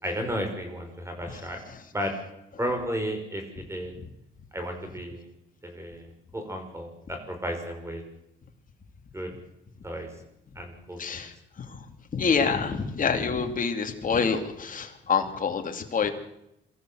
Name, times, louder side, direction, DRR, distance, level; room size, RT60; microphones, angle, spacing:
voice 1, 0.0-1.6 1.9-2.2 2.6-3.9 4.5-5.3 5.6-8.0 9.1-9.3 9.8-10.1 10.6-11.2, equal, 15° right, 4 dB, 5.9 m, -33 dB
voice 2, 11.0-11.9 12.1-16.1, left 5 dB, 45° left, 5 dB, 2.9 m, -27 dB
24.0 x 14.0 x 7.9 m, 0.84 s
cardioid pair, 90°, 20 cm